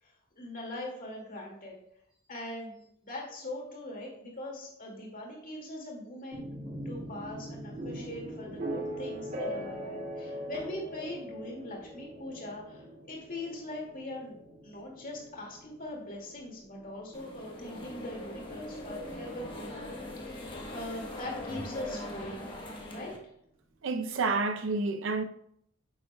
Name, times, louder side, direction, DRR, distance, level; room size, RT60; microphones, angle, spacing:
voice 1, 0.0-1.8 2.3-6.5 6.8-14.3 14.6-19.8 20.2-22.5 22.9-23.2, left 1 dB, 40° left, 2.1 m, -41 dB
sound 1, 6.3-20.1, equal, 40° right, 1.9 m, -41 dB
sound 2, 17.1-23.2, left 1 dB, 25° left, 1.1 m, -41 dB
voice 2, 23.8-25.2, right 3 dB, 65° right, 0.6 m, -29 dB
9.8 x 7.0 x 2.2 m
head